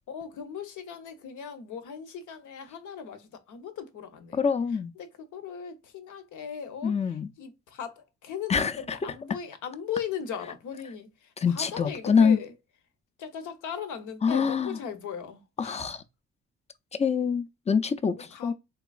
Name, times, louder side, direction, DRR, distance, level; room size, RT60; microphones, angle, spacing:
voice 1, 0.1-4.4 5.0-12.5 13.2-16.0 18.3-18.5, left 7 dB, 80° left, 0.9 m, -38 dB
voice 2, 4.3-4.9 6.8-7.3 8.5-9.0 11.4-12.4 14.2-14.8 15.6-16.0 17.0-18.5, left 6 dB, 20° left, 0.4 m, -25 dB
3.7 x 2.9 x 2.3 m
cardioid pair, 90°, 30 cm